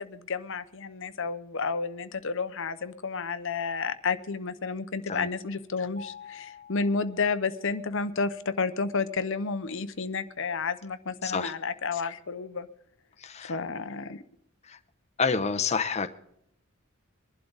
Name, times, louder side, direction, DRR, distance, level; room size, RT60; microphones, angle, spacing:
voice 1, 0.0-12.7 13.4-14.2, left 4 dB, 60° left, 11 dB, 0.9 m, -31 dB
Mallet percussion, 6.0-7.9, left 6 dB, 65° right, 3.3 m, -48 dB
voice 2, 11.2-11.5 13.2-13.6 14.6-14.8 15.2-16.1, left 5 dB, 30° left, 7 dB, 0.8 m, -28 dB
23.0 x 11.5 x 4.0 m, 0.76 s
head